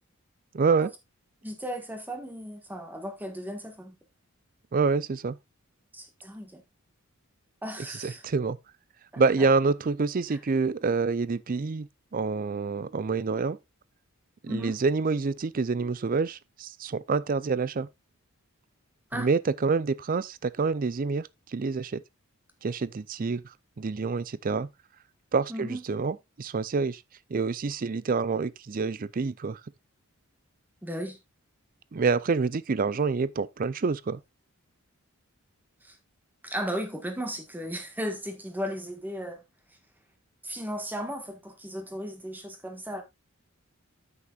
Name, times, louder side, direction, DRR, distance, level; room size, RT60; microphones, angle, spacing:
voice 1, 0.5-0.9 4.7-5.4 8.0-8.6 9.2-13.6 14.4-17.9 19.1-22.0 22.6-23.4 23.8-24.7 25.3-27.0 27.3-29.6 31.9-34.2, right 4 dB, 40° right, 0.4 m, -27 dB
voice 2, 1.4-3.9 5.9-6.6 7.6-8.2 9.1-9.5 10.3-10.4 14.5-14.8 19.1-19.3 25.5-25.8 30.8-31.2 35.8-36.0 36.4-39.4 40.4-43.0, equal, 10° right, 1.4 m, -35 dB
9.6 x 8.6 x 2.4 m
head